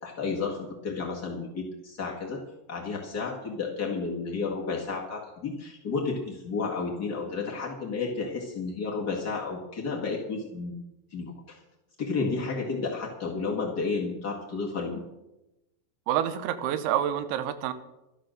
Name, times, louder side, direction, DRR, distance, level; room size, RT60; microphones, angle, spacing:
voice 1, 0.0-2.4 2.7-10.7 11.1-11.6 12.0-15.0, left 4 dB, 80° left, -2 dB, 0.8 m, -32 dB
voice 2, 16.1-17.7, right 10 dB, 85° right, 11 dB, 3.3 m, -27 dB
12.5 x 12.0 x 6.5 m, 0.94 s
omnidirectional pair, 5.2 m